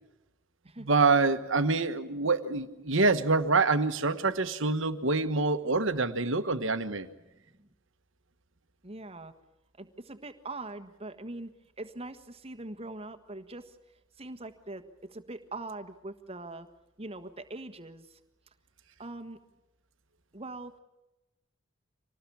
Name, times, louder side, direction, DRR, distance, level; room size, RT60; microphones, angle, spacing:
voice 1, 0.8-7.1, right 3 dB, 60° right, 9 dB, 1.3 m, -26 dB
voice 2, 7.2-7.7 8.8-9.3 9.8-13.8 14.2-16.7 17.0-18.2 19.0-19.4 20.3-20.8, right 2 dB, 25° right, 7 dB, 1.5 m, -42 dB
26.0 x 19.0 x 8.7 m, 0.98 s
head